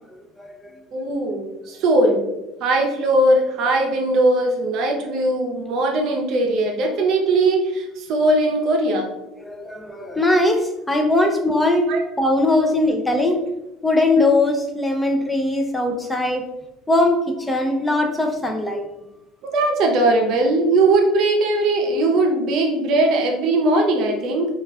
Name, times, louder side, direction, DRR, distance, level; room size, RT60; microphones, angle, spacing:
voice 1, 0.4-0.7 9.4-11.9 12.2-13.4 13.8-16.4 16.9-18.8, left 2 dB, 10° left, 3 dB, 0.4 m, -20 dB
voice 2, 0.9-2.2 2.6-9.1 11.9-12.0 19.4-24.5, right 2 dB, 60° right, 2 dB, 0.6 m, -19 dB
3.1 x 2.3 x 2.3 m, 0.96 s
supercardioid pair, 90°, 0 cm